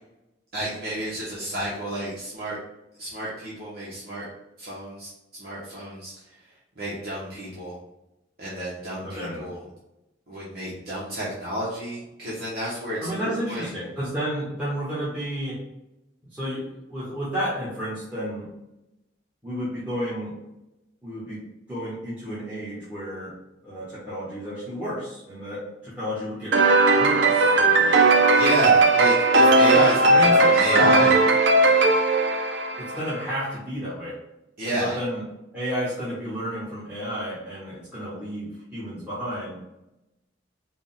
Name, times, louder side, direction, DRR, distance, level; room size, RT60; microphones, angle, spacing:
voice 1, 0.5-2.6 3.0-4.2 4.6-5.1 5.4-6.1 6.8-7.8 8.4-9.6 10.3-13.7 28.3-31.1 34.6-35.0, right 1 dB, 60° right, -8 dB, 1.1 m, -30 dB
voice 2, 9.0-9.5 13.0-15.6 16.3-18.5 19.4-20.3 21.0-23.3 23.6-26.5 26.9-28.0 28.6-28.7 29.7-31.1 32.8-34.2 34.6-35.2 35.5-39.7, equal, 10° right, -11 dB, 1.3 m, -31 dB
sound 1, 26.5-33.2, right 2 dB, 80° right, 0.6 m, -18 dB
5.0 x 2.4 x 3.6 m, 0.92 s
head